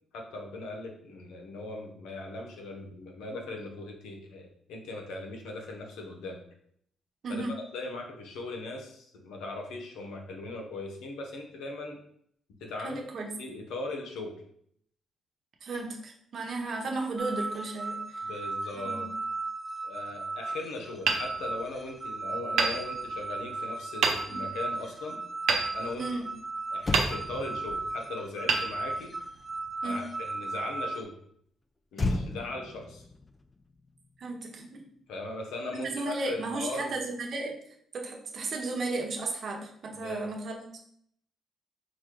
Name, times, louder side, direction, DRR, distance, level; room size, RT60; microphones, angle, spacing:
voice 1, 0.1-6.4 7.3-7.4 7.7-12.0 12.6-13.0 13.4-14.3 18.2-19.1 19.8-25.2 25.7-26.1 26.7-29.1 29.8-31.1 31.9-33.1 35.1-37.0 40.0-40.3, left 2 dB, 85° left, 2 dB, 0.9 m, -39 dB
voice 2, 12.8-13.3 15.6-18.3 18.7-19.1 24.3-24.4 26.0-26.3 29.8-30.1 34.2-34.8 35.7-37.6 37.9-40.8, right 3 dB, 55° right, 1 dB, 1.0 m, -34 dB
sound 1, 17.2-31.0, right 3 dB, 20° right, 0.6 m, -36 dB
Hammer, 21.0-22.0 22.5-23.5 24.0-24.6 25.5-26.4 26.9-27.7 28.4-29.4, right 5 dB, 75° right, 0.7 m, -30 dB
Motor vehicle (road), 26.3-26.4 26.7-30.3 31.9-34.5 34.8-35.1, left 2 dB, 25° left, 0.4 m, -36 dB
4.2 x 2.2 x 4.5 m, 0.66 s
cardioid pair, 90°, 0 cm